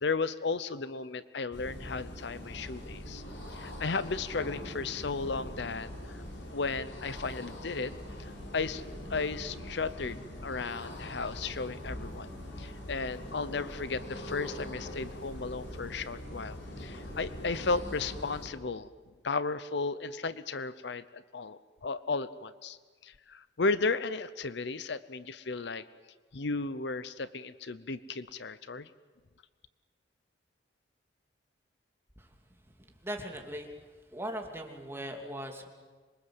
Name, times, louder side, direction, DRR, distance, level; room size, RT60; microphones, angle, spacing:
voice 1, 0.0-3.2 3.5-6.2 6.5-7.9 8.5-8.8 9.1-12.3 12.6-18.9 19.2-22.8 23.0-25.8 26.3-28.9, left 4 dB, 65° left, 14 dB, 0.8 m, -34 dB
sound 1, 1.5-18.5, left 1 dB, 85° left, 6.0 m, -42 dB
voice 2, 32.8-33.7 34.1-35.7, right 1 dB, 15° right, 2 dB, 2.8 m, -39 dB
26.0 x 23.0 x 7.9 m, 1.4 s
head